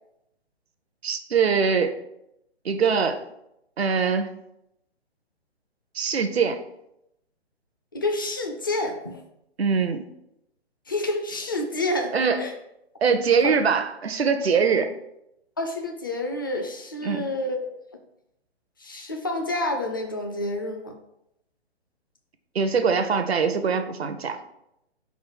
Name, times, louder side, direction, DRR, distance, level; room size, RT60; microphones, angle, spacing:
voice 1, 1.0-2.0 2.6-3.2 3.8-4.3 5.9-6.6 9.6-10.0 12.1-12.4 13.0-14.9 17.0-17.3 22.5-24.4, right 5 dB, 70° right, 8 dB, 0.7 m, -22 dB
voice 2, 7.9-9.2 10.9-12.5 13.4-13.6 15.6-17.6 18.8-21.0, left 1 dB, 20° left, 5 dB, 0.4 m, -28 dB
4.8 x 3.9 x 5.5 m, 0.82 s
figure-of-eight pair, 130°, 33 cm